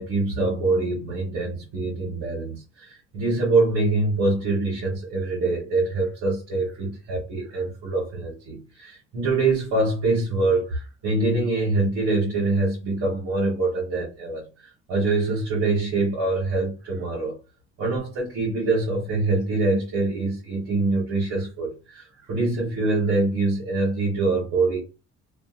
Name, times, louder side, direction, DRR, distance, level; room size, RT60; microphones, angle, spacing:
voice 1, 0.0-17.3 17.8-24.8, right 3 dB, 85° right, 1.1 m, -24 dB
2.6 x 2.4 x 2.4 m
cardioid pair, 90°, 30 cm